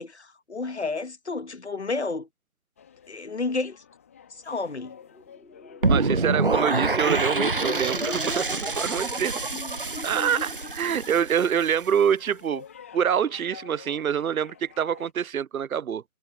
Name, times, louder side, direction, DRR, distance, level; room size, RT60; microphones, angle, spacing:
voice 1, 0.0-2.3 3.1-3.8 4.3-5.0, left 3 dB, 50° left, 1.5 m, -31 dB
sound 1, 2.8-15.1, left 8 dB, 10° left, 1.7 m, -50 dB
sound 2, 5.0-11.5, left 2 dB, 75° left, 4.7 m, -41 dB
sound 3, 5.8-11.9, right 3 dB, 40° right, 1.0 m, -26 dB
voice 2, 5.9-9.4 10.0-12.6 12.9-16.0, right 8 dB, 70° right, 0.6 m, -26 dB
figure-of-eight pair, 165°, 43 cm